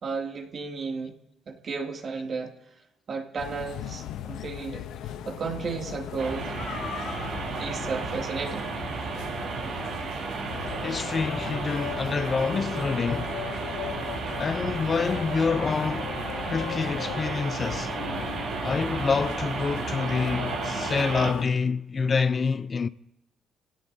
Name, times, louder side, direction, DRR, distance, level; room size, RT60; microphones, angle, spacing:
voice 1, 0.0-1.1 1.5-2.5 3.1-6.5 7.6-8.7, right 5 dB, 55° right, 2.5 m, -33 dB
sound 1, 3.4-21.5, left 11 dB, 90° left, 0.7 m, -38 dB
sound 2, 6.2-21.3, right 5 dB, 85° right, 4.8 m, -33 dB
voice 2, 10.8-13.3 14.4-16.2 16.5-18.0 18.6-22.9, left 5 dB, 40° left, 0.5 m, -27 dB
28.5 x 17.0 x 2.7 m
cardioid pair, 90°, 0 cm